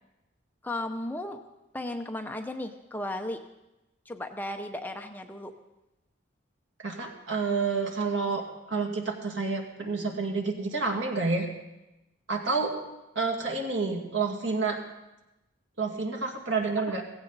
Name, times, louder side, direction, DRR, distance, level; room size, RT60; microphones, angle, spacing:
voice 1, 0.6-1.4 1.7-3.4 4.1-5.5 16.9-17.0, left 1 dB, 10° left, 5 dB, 0.7 m, -35 dB
voice 2, 6.8-11.5 12.3-12.8 13.2-14.8 15.8-17.0, right 4 dB, 80° right, 2 dB, 2.2 m, -29 dB
16.0 x 16.0 x 4.0 m, 0.97 s
head